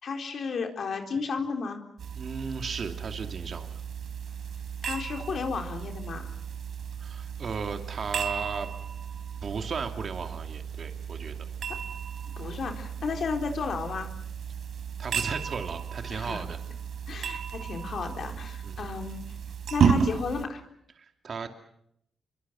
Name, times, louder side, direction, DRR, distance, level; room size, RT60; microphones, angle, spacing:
voice 1, 0.0-1.8 4.8-6.3 12.4-14.1 16.1-16.4 17.1-19.2 19.7-20.6, left 5 dB, 65° left, 4 dB, 4.0 m, -33 dB
sound 1, 2.0-20.5, right 7 dB, 75° right, 3.3 m, -33 dB
voice 2, 2.2-3.8 7.0-8.7 9.4-11.5 15.0-16.6 18.6-18.9 21.0-21.5, right 5 dB, 55° right, 5 dB, 2.7 m, -35 dB
26.5 x 24.0 x 7.6 m, 0.74 s
cardioid pair, 85°, 0 cm